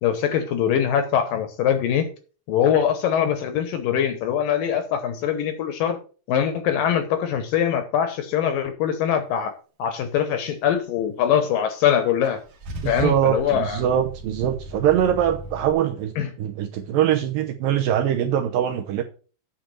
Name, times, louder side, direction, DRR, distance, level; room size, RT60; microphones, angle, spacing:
voice 1, 0.0-2.1 2.5-6.0 6.3-9.5 9.8-12.4 12.9-13.8 16.2-16.3, left 9 dB, 70° left, 8 dB, 2.3 m, -22 dB
Car / Engine starting / Idling, 12.2-15.7, right 1 dB, 55° right, 1.6 m, -37 dB
voice 2, 12.8-19.0, right 10 dB, 75° right, 5 dB, 2.1 m, -22 dB
8.7 x 4.6 x 7.6 m, 0.38 s
omnidirectional pair, 4.7 m